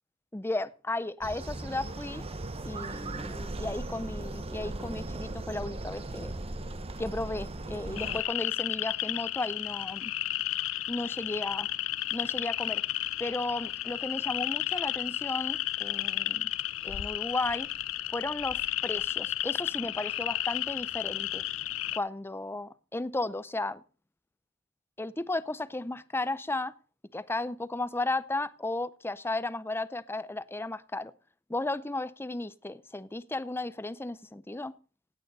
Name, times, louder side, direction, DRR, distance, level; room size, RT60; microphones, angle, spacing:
voice 1, 0.3-2.2 2.6-6.3 7.0-10.1 10.9-11.7 12.1-12.8 13.2-16.5 16.8-17.7 18.1-21.4 22.0-23.8 25.0-26.7 27.1-31.1 31.5-34.7, left 2 dB, 10° left, 0.5 m, -34 dB
sound 1, 1.2-8.2, right 2 dB, 30° right, 0.9 m, -38 dB
sound 2, 8.0-22.0, left 14 dB, 90° left, 0.5 m, -33 dB
17.0 x 9.0 x 4.1 m
head